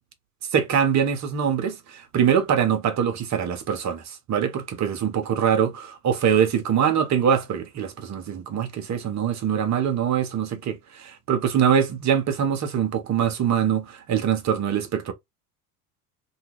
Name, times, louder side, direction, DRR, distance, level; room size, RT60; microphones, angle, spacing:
voice 1, 0.5-15.1, right 8 dB, 35° right, 0.9 m, -23 dB
2.7 x 2.3 x 3.0 m
hypercardioid pair, 70°, 47 cm